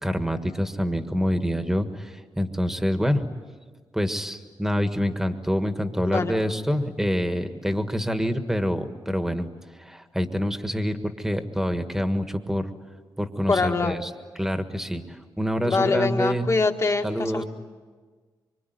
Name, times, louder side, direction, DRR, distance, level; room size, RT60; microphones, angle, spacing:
voice 1, 0.0-3.3 3.9-9.5 9.7-12.7 13.2-14.1 14.3-16.5 17.0-17.4, equal, 5° right, 8 dB, 1.6 m, -26 dB
voice 2, 13.5-14.0 15.6-17.4, left 4 dB, 35° left, 4 dB, 1.9 m, -24 dB
25.0 x 25.0 x 9.4 m, 1.5 s
wide cardioid pair, 120°, 8 cm